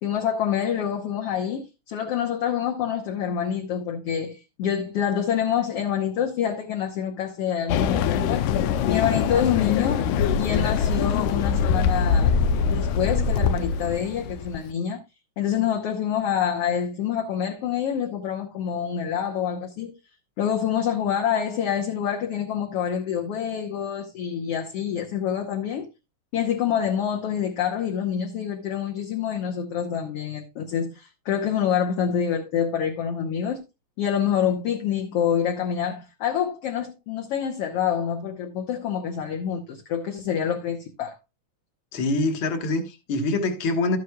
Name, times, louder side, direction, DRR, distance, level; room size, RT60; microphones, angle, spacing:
voice 1, 0.0-8.5 8.9-10.0 10.4-12.3 12.7-15.0 15.4-19.9 20.4-25.9 26.3-33.6 34.0-41.2, left 8 dB, 65° left, 1.7 m, -26 dB
sound 1, 7.7-14.7, left 6 dB, 85° left, 2.2 m, -23 dB
voice 2, 41.9-44.0, left 2 dB, 50° left, 1.8 m, -25 dB
12.5 x 9.5 x 2.3 m
omnidirectional pair, 3.5 m